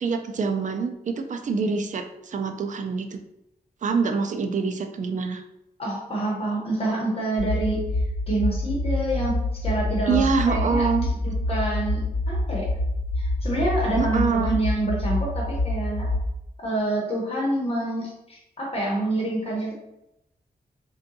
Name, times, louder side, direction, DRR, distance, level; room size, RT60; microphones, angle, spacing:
voice 1, 0.0-3.2 3.8-5.4 10.1-11.1 14.0-14.6, right 5 dB, 55° right, 6 dB, 0.4 m, -25 dB
voice 2, 5.8-7.8 8.3-10.9 11.2-12.7 13.2-16.1 16.6-19.7, right 1 dB, 40° left, -3 dB, 0.9 m, -27 dB
sound 1, 7.4-16.2, left 1 dB, 65° left, 0.5 m, -26 dB
3.6 x 2.3 x 2.6 m, 0.85 s
wide cardioid pair, 120°, 16 cm